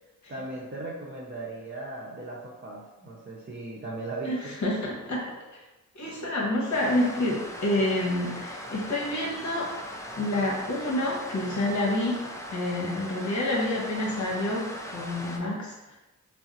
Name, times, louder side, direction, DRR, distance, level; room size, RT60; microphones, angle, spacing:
voice 1, 0.3-4.6, right 2 dB, 30° right, -5 dB, 0.7 m, -37 dB
voice 2, 4.2-5.3 5.5-5.6 5.9-9.7 10.2-12.2 12.5-16.0, left 1 dB, 55° left, -3 dB, 1.0 m, -28 dB
sound 1, 6.7-15.4, equal, 10° left, 0.5 m, -39 dB
2.7 x 2.0 x 3.7 m, 1.0 s
supercardioid pair, 45°, 34 cm